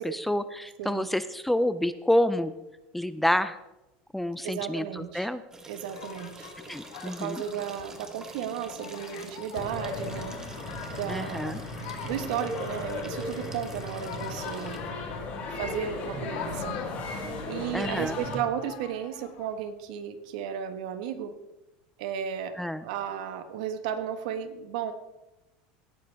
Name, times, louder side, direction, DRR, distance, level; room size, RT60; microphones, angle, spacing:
voice 1, 0.0-2.5 2.9-3.6 4.1-5.4 6.7-7.4 11.1-11.6 17.7-18.2 22.6-22.8, left 1 dB, 5° left, 13 dB, 0.4 m, -28 dB
voice 2, 4.4-5.3 5.7-6.5 7.0-10.4 10.9-11.5 12.0-14.8 15.5-16.8 17.1-21.4 22.0-22.6 22.8-24.9, right 9 dB, 80° right, 9 dB, 1.3 m, -34 dB
sound 1, 5.5-14.8, right 3 dB, 15° right, 1.2 m, -47 dB
sound 2, 5.9-19.7, left 8 dB, 80° left, 1.6 m, -45 dB
sound 3, 9.5-18.4, left 2 dB, 40° left, 4.8 m, -36 dB
17.0 x 9.6 x 3.4 m, 1.0 s
supercardioid pair, 150°, 4 cm